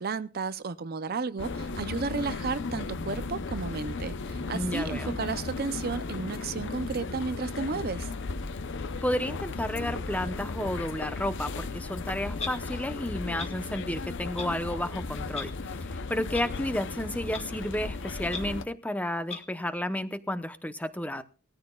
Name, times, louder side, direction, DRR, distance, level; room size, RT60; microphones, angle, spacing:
voice 1, 0.0-8.1, right 4 dB, 45° right, 0.5 m, -33 dB
sound 1, 1.4-18.7, left 3 dB, 55° left, 0.7 m, -35 dB
voice 2, 4.5-5.2 9.0-21.2, left 1 dB, 5° left, 0.7 m, -32 dB
Clock, 12.4-12.5 13.4-13.5 14.4-14.5 15.3-15.5 16.3-16.4 17.3-17.4 18.3-18.4 19.3-19.4, left 4 dB, 30° left, 1.6 m, -35 dB
19.5 x 14.0 x 2.3 m
head